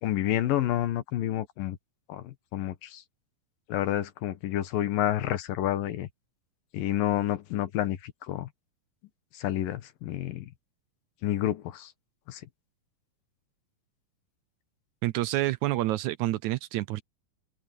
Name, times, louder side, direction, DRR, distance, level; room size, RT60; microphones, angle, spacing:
voice 1, 0.0-1.8 2.1-3.0 3.7-6.1 6.7-8.0 8.3-8.5 9.4-10.5 11.2-11.9 12.3-12.4, left 12 dB, 75° left, 3.0 m, -29 dB
voice 2, 15.0-17.0, right 16 dB, 80° right, 1.7 m, -28 dB
omnidirectional pair, 4.1 m